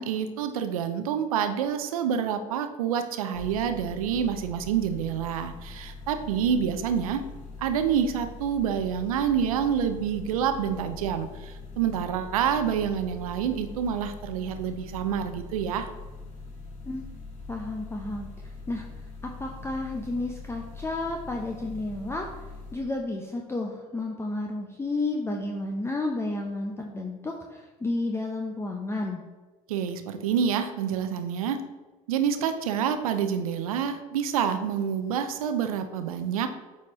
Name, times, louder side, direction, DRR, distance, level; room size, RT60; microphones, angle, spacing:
voice 1, 0.0-7.2 7.6-15.9 29.7-31.7 32.1-36.5, right 8 dB, 80° right, 8 dB, 0.6 m, -27 dB
sound 1, 3.3-22.8, left 3 dB, 40° left, 1.7 m, -42 dB
voice 2, 17.5-18.9 19.2-22.3 22.7-29.2, left 2 dB, 15° left, 1 dB, 0.7 m, -32 dB
8.4 x 4.4 x 3.1 m, 1.2 s
hypercardioid pair, 75°, 18 cm